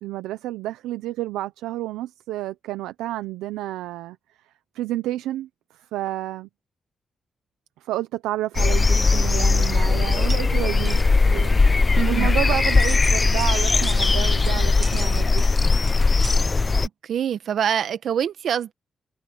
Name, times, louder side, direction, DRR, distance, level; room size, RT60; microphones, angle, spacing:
voice 1, 0.0-4.2 4.7-5.5 5.7-6.5 7.8-11.8 12.1-15.4, right 15 dB, 85° right, 0.9 m, -30 dB
sound 1, 8.6-16.9, left 3 dB, 40° left, 0.8 m, -19 dB
sound 2, 10.0-16.4, right 3 dB, 40° right, 1.3 m, -41 dB
voice 2, 12.0-12.3 17.0-18.7, right 9 dB, 70° right, 1.6 m, -25 dB
supercardioid pair, 45°, 0 cm